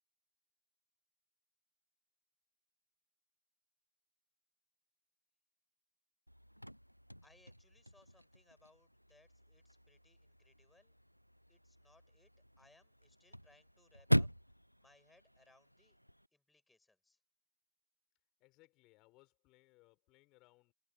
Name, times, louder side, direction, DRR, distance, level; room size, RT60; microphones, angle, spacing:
Chirp tweet / Car / Slam, 6.3-16.3, equal, 90° right, 0.3 m, -41 dB
voice 1, 7.2-10.9 11.5-14.3 14.8-16.0 16.3-17.2, left 2 dB, 5° left, 7.7 m, -69 dB
voice 2, 18.4-20.7, left 22 dB, 40° left, 5.9 m, -67 dB
figure-of-eight pair, 90°, 0 cm